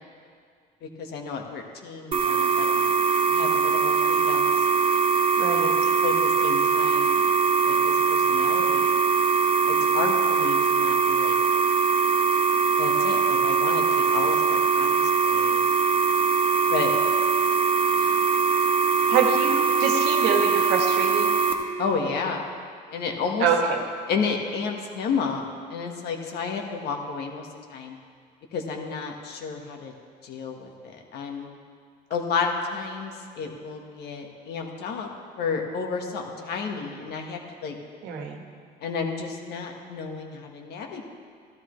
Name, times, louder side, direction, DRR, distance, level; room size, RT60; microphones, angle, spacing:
voice 1, 0.8-2.9 3.3-4.7 5.6-7.2 7.7-9.0 9.7-11.4 12.8-15.6 16.7-16.9 18.0-18.2 21.8-22.4 22.9-23.5 24.1-28.0 28.5-29.9 30.2-31.5 32.1-35.1 35.4-37.8 38.8-41.0, left 5 dB, 75° left, 2 dB, 1.5 m, -32 dB
sound 1, 2.1-21.5, right 5 dB, 30° right, 1.3 m, -22 dB
voice 2, 5.4-5.7 19.1-21.3 23.4-23.8 38.0-38.4, right 6 dB, 85° right, 3 dB, 1.4 m, -25 dB
13.5 x 12.5 x 3.2 m, 2.2 s
cardioid pair, 110°, 17 cm